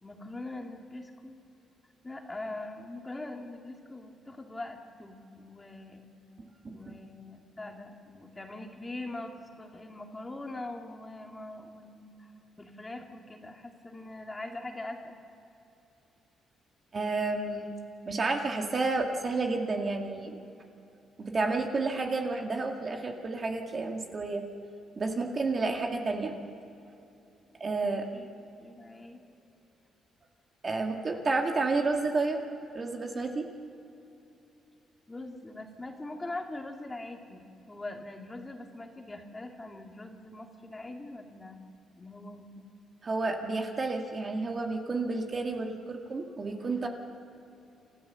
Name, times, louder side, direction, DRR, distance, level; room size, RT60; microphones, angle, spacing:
voice 1, 0.0-1.4 2.0-6.0 6.7-12.3 12.6-15.2 27.8-28.3 28.6-29.9 30.9-31.2 35.1-41.6 42.0-42.6, left 2 dB, 20° left, 3 dB, 2.3 m, -42 dB
voice 2, 16.9-17.7 18.1-20.4 21.2-24.4 25.0-26.4 27.6-28.1 30.6-32.4 32.7-33.5 43.0-46.9, right 3 dB, 40° right, 3 dB, 2.2 m, -30 dB
28.0 x 13.5 x 7.0 m, 2.8 s
cardioid pair, 90°, 0 cm